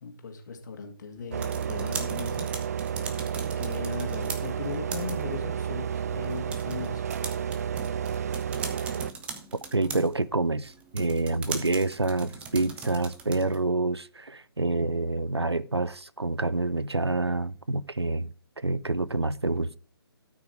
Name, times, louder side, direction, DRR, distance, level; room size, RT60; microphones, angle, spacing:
voice 1, 0.0-2.5 3.6-7.0, left 5 dB, 45° left, 2.3 m, -38 dB
sound 1, 1.2-13.7, right 5 dB, 10° right, 0.8 m, -41 dB
sound 2, 1.3-9.1, right 8 dB, 40° right, 0.4 m, -31 dB
voice 2, 9.7-19.8, right 2 dB, 85° right, 0.6 m, -27 dB
12.5 x 6.1 x 4.8 m
figure-of-eight pair, 140°, 13 cm